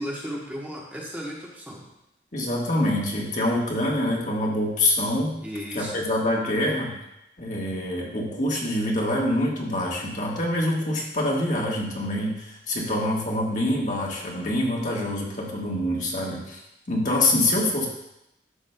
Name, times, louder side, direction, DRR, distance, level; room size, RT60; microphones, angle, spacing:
voice 1, 0.0-1.8 5.4-6.0, equal, 10° right, -3 dB, 1.1 m, -35 dB
voice 2, 2.3-5.4 5.7-6.9 7.4-17.9, left 1 dB, 45° left, -2 dB, 1.4 m, -25 dB
11.0 x 7.1 x 2.2 m, 0.87 s
head